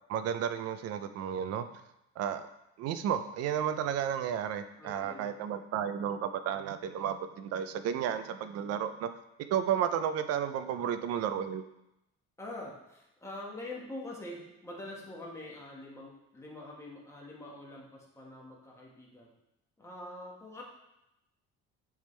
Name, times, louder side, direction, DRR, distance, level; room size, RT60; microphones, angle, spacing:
voice 1, 0.1-1.7 2.2-2.5 2.8-9.1 9.5-11.6, right 9 dB, 55° right, 11 dB, 0.5 m, -32 dB
voice 2, 4.8-5.3 10.7-11.1 12.4-19.3 19.8-20.6, left 2 dB, 10° left, -3 dB, 1.3 m, -45 dB
10.5 x 3.6 x 3.2 m, 0.88 s
cardioid pair, 155°, 29 cm